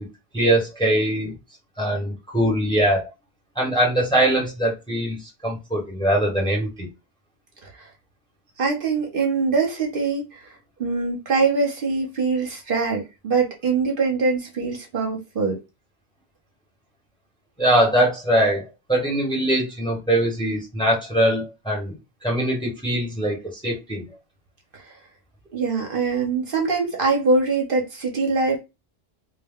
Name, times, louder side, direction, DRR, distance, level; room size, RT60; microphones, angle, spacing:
voice 1, 0.3-1.3 1.8-3.1 3.6-6.9 17.6-21.9 22.2-24.1, right 1 dB, 5° left, 0.8 m, -22 dB
voice 2, 8.6-10.4 10.8-15.6 24.7-24.8 25.5-28.6, right 4 dB, 60° right, 0.8 m, -23 dB
2.3 x 2.1 x 3.4 m
omnidirectional pair, 1.1 m